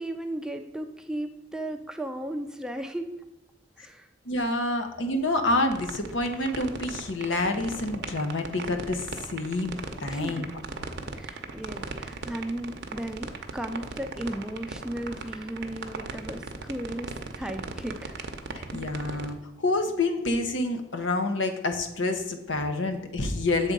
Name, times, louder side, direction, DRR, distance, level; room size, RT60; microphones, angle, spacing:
voice 1, 0.0-3.1 3.8-4.1 10.1-10.5 11.1-18.3 19.0-19.3, right 1 dB, 5° right, 6 dB, 0.4 m, -35 dB
voice 2, 4.2-10.5 18.5-23.7, left 2 dB, 75° left, 6 dB, 0.9 m, -28 dB
sound 1, 5.7-19.3, right 4 dB, 60° right, 0.7 m, -37 dB
7.3 x 3.6 x 5.3 m, 0.89 s
head